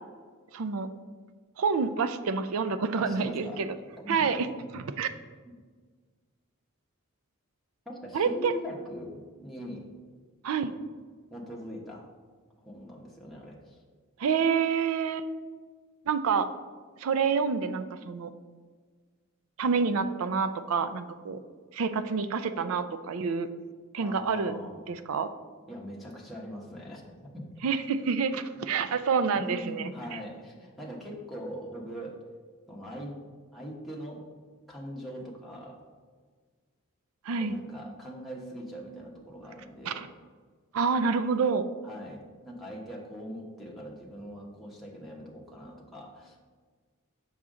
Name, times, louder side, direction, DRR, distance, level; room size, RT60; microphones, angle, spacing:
voice 1, 0.5-0.9 1.6-3.7 4.1-4.5 4.7-5.1 8.1-8.5 10.4-10.7 14.2-15.3 16.1-16.5 17.0-18.3 19.6-21.4 21.7-23.5 23.9-24.6 24.9-25.3 27.6-30.2 37.3-37.6 39.8-40.1 40.7-41.6, right 5 dB, 75° right, 11 dB, 0.4 m, -28 dB
voice 2, 2.9-3.7 4.0-4.5 7.8-9.9 11.3-12.1 12.6-13.8 24.0-24.8 25.7-27.5 29.3-32.2 32.7-33.2 33.5-34.3 34.7-35.8 37.4-40.1 41.8-46.4, equal, ahead, -4 dB, 1.1 m, -41 dB
6.9 x 6.3 x 3.7 m, 1.5 s
head